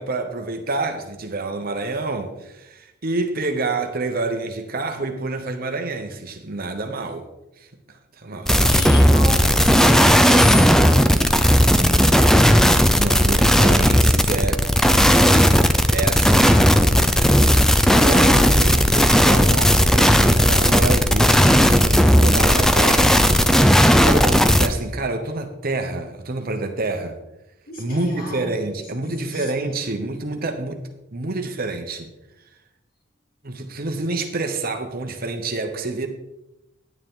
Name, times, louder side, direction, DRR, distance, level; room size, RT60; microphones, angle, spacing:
voice 1, 0.0-7.3 7.6-7.7 8.2-8.5 12.9-14.6 15.9-16.6 17.9-23.2 23.5-27.2 27.8-30.8 31.1-32.1 33.4-36.1, right 2 dB, 50° right, 1.0 m, -27 dB
voice 2, 8.3-12.6 16.5-18.0 27.7-29.7, left 1 dB, 50° left, 2.9 m, -33 dB
sound 1, 8.5-24.7, equal, 5° left, 0.5 m, -15 dB
10.5 x 9.5 x 3.8 m
head